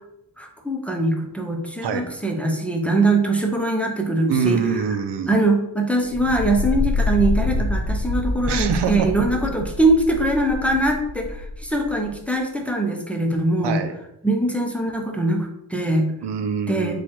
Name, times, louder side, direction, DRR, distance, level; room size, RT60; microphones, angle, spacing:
voice 1, 0.4-4.6 5.3-13.8 14.2-16.1 16.7-17.0, right 2 dB, 5° left, 2 dB, 0.5 m, -22 dB
voice 2, 4.3-5.3 8.5-9.3 13.6-13.9 16.2-17.0, right 6 dB, 85° right, 7 dB, 0.6 m, -24 dB
sound 1, 6.0-12.1, left 2 dB, 80° left, 0.8 m, -26 dB
4.3 x 2.3 x 4.4 m, 0.81 s
wide cardioid pair, 115°, 41 cm